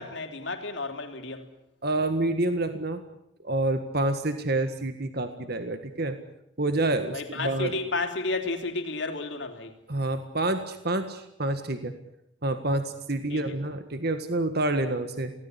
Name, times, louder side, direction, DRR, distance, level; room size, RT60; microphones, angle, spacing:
voice 1, 0.0-1.5 7.1-9.7 13.3-13.6, left 3 dB, 60° left, 3.4 m, -32 dB
voice 2, 1.8-3.0 3.4-6.2 6.6-7.7 9.9-12.0 12.4-15.3, right 2 dB, 50° right, 1.7 m, -28 dB
25.0 x 18.0 x 9.9 m
head